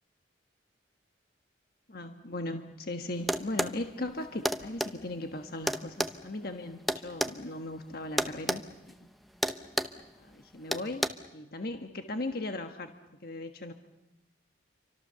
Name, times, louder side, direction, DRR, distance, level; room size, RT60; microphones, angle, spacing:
voice 1, 1.9-8.6 10.2-11.0 11.3-12.9 13.2-13.7, left 2 dB, 50° left, 6 dB, 1.4 m, -38 dB
sound 1, 3.3-3.8 4.4-4.9 5.7-7.4 8.2-8.6 8.9-9.1 9.4-10.0 10.7-11.1, equal, ahead, 0.8 m, -29 dB
30.0 x 25.0 x 6.9 m, 0.96 s
head